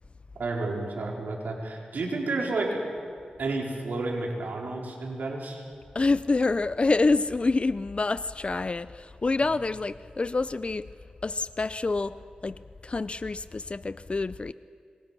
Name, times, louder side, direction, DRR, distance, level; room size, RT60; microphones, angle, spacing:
voice 1, 0.4-2.8 3.4-5.6, right 2 dB, 85° right, 4.6 m, -31 dB
voice 2, 5.9-10.9 11.2-14.5, left 3 dB, 40° left, 0.5 m, -27 dB
25.5 x 22.5 x 6.1 m
cardioid pair, 60°, 3 cm